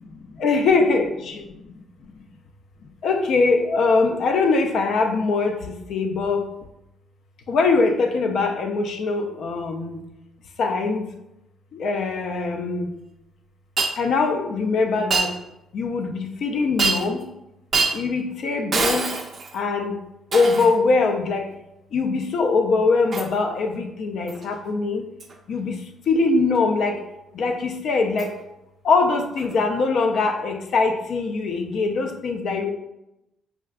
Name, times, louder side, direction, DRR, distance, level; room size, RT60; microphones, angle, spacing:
voice 1, 0.4-1.4 3.0-6.5 7.5-10.0 10.6-11.1 11.7-12.9 14.0-15.3 15.7-17.3 17.9-19.1 19.5-20.0 20.3-21.5 21.9-25.0 25.5-25.8 26.1-27.0 27.3-28.3 28.8-32.7, left 4 dB, 65° left, 4 dB, 0.3 m, -22 dB
Shatter, 13.8-14.0 15.1-15.3 16.8-17.2 17.7-18.0 18.7-19.6 20.3-20.8 23.1-23.3 24.3-24.4 25.2-25.3 28.2-28.3 29.4-29.5, right 4 dB, 45° right, 0.3 m, -24 dB
3.5 x 2.2 x 2.3 m, 0.90 s
cardioid pair, 90°, 0 cm